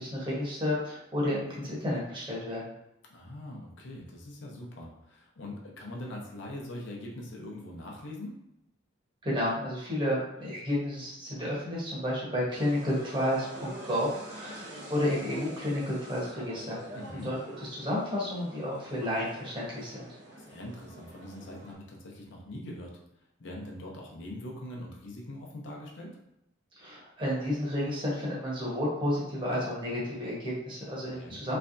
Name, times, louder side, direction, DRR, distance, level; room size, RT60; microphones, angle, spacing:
voice 1, 0.0-2.7 9.2-16.8 17.2-17.3 17.7-20.1 26.8-31.6, left 1 dB, 25° right, -6 dB, 1.2 m, -31 dB
voice 2, 3.1-8.4 16.9-17.3 20.4-23.0 23.4-26.2 31.2-31.4, left 1 dB, 65° left, -1 dB, 0.7 m, -42 dB
sound 1, 12.5-21.7, right 1 dB, 55° right, 0.9 m, -46 dB
3.3 x 3.2 x 2.6 m, 0.83 s
head